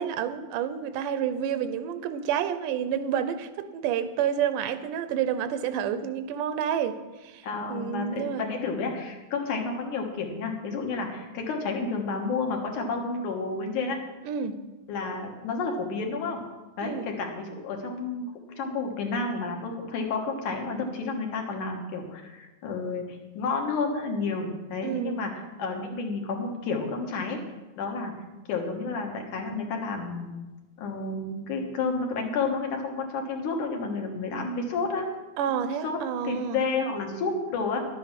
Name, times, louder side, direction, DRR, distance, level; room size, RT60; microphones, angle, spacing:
voice 1, 0.0-8.4 14.3-14.6 16.8-17.1 24.8-25.3 35.4-36.6, right 8 dB, 90° right, 11 dB, 2.3 m, -29 dB
voice 2, 7.4-14.0 14.9-16.4 16.8-18.3 18.6-25.3 25.6-27.4 27.7-28.1 28.5-30.3 30.8-35.1 35.8-36.0 36.2-37.9, left 4 dB, 75° left, 2 dB, 2.9 m, -30 dB
11.5 x 8.6 x 5.8 m, 1.2 s
omnidirectional pair, 3.6 m